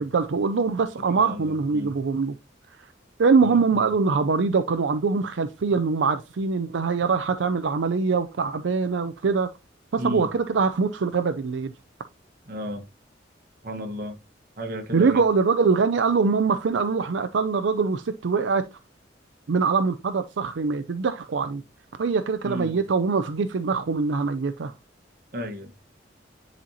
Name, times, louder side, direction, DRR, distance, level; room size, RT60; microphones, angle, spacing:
voice 1, 0.0-2.3 3.2-9.5 9.9-11.7 14.9-18.6 19.5-21.6 22.0-24.7, right 4 dB, 80° right, 0.5 m, -23 dB
voice 2, 1.2-2.0 3.4-3.9 10.0-10.3 12.5-12.9 13.6-14.2 14.6-15.2 22.4-22.8 25.3-25.7, equal, 50° right, 1.2 m, -33 dB
10.0 x 4.3 x 2.7 m
head